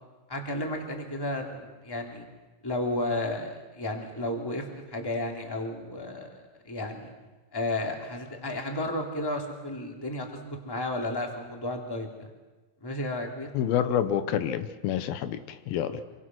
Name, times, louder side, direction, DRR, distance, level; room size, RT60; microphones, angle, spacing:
voice 1, 0.3-2.2 2.6-6.3 6.6-7.1 7.5-12.3 12.8-13.5 15.9-16.0, left 1 dB, 5° left, 2 dB, 2.5 m, -33 dB
voice 2, 13.5-16.0, left 9 dB, 85° left, 11 dB, 2.9 m, -28 dB
27.5 x 24.5 x 6.2 m, 1.2 s
omnidirectional pair, 4.2 m